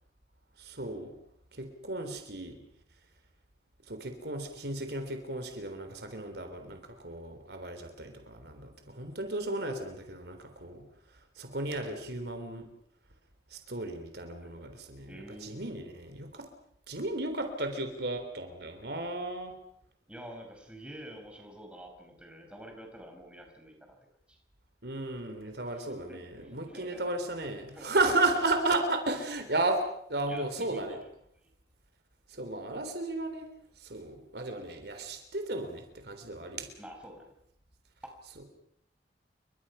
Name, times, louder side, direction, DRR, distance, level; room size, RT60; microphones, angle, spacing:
voice 1, 0.6-1.1 1.5-2.6 3.9-10.8 11.4-12.7 13.5-15.1 15.4-16.5 16.9-19.5 24.8-29.8 30.1-31.0 32.3-33.5 33.8-36.7, right 2 dB, 65° right, 7 dB, 3.6 m, -34 dB
voice 2, 15.1-15.7 20.1-24.0 24.3-24.4 25.6-27.0 27.7-28.2 30.3-31.0 31.4-31.5 36.8-37.3 38.0-38.1, equal, 5° right, 2 dB, 5.6 m, -48 dB
29.5 x 24.5 x 5.7 m, 0.70 s
head